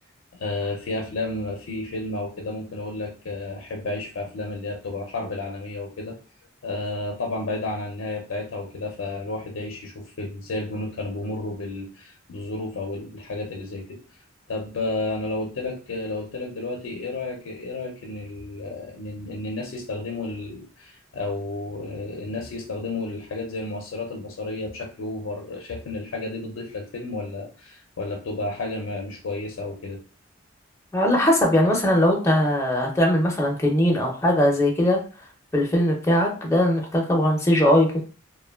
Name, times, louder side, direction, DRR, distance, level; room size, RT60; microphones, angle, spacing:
voice 1, 0.4-6.2 6.6-14.0 14.5-30.0, left 2 dB, 70° left, 1 dB, 0.5 m, -32 dB
voice 2, 30.9-35.0 35.5-38.0, left 1 dB, 15° left, -1 dB, 0.6 m, -20 dB
3.0 x 2.1 x 2.2 m, 0.38 s
head